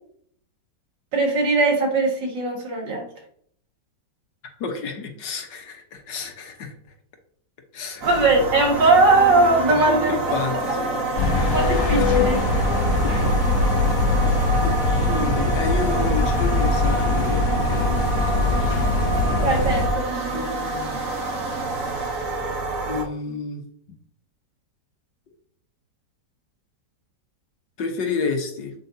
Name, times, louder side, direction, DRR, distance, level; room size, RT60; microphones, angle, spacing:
voice 1, 1.1-3.0 8.0-10.1 11.5-12.4 13.1-13.2 19.4-20.4, right 3 dB, 80° right, 0 dB, 2.7 m, -20 dB
voice 2, 4.6-6.9 7.7-8.2 9.7-11.0 12.2-12.3 13.2-13.3 14.6-14.7 15.0-19.2 20.3-21.0 22.9-23.6 27.8-28.7, left 4 dB, 75° left, 4 dB, 1.9 m, -30 dB
sound 1, 8.0-23.0, right 3 dB, 50° right, 1.6 m, -28 dB
sound 2, 11.2-19.9, left 2 dB, 55° left, 1.3 m, -21 dB
8.0 x 7.8 x 2.8 m, 0.62 s
omnidirectional pair, 1.9 m